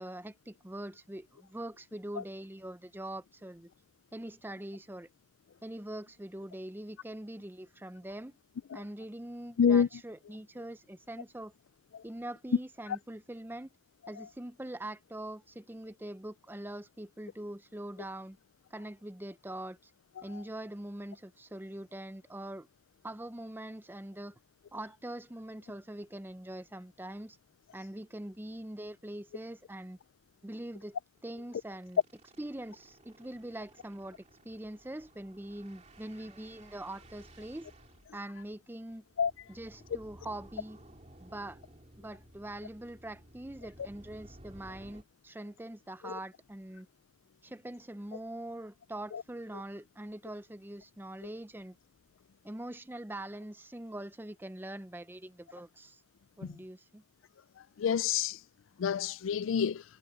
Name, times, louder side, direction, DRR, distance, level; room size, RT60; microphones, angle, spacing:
voice 1, 0.0-3.7 4.1-5.1 5.6-8.4 8.7-11.5 12.0-13.7 14.1-18.4 18.7-19.9 20.2-22.7 23.0-24.4 24.7-27.4 27.7-30.0 30.4-31.0 31.2-32.0 32.4-37.7 38.1-39.0 39.5-40.8 41.2-41.6 42.0-46.9 47.4-51.8 52.4-56.0 56.4-57.0, right 1 dB, 10° right, 0.6 m, -43 dB
sound 1, 28.3-28.5 28.8-28.9 29.2-29.4 29.7-29.8 31.2-45.0, right 1 dB, 35° right, 2.8 m, -56 dB
voice 2, 57.8-58.4 58.8-59.8, left 7 dB, 90° left, 0.4 m, -27 dB
head